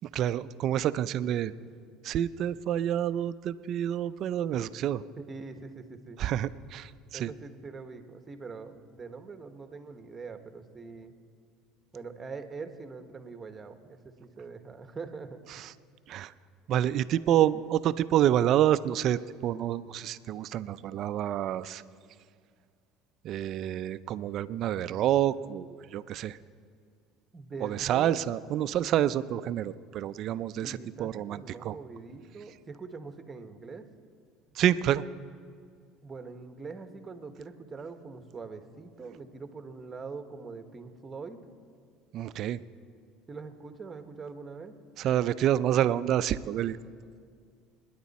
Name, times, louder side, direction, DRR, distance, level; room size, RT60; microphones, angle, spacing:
voice 1, 0.1-1.5 2.0-5.0 6.2-7.3 15.5-15.7 16.1-16.3 16.7-21.8 23.2-26.4 27.6-31.8 34.6-35.0 42.1-42.6 45.0-46.8, right 11 dB, 55° right, 14 dB, 0.5 m, -28 dB
voice 2, 5.3-6.2 7.1-11.1 11.9-15.4 27.3-28.2 30.6-33.8 36.0-41.4 43.3-44.7, right 4 dB, 25° right, 8 dB, 1.3 m, -43 dB
26.5 x 10.5 x 4.2 m, 2.2 s
supercardioid pair, 100°, 0 cm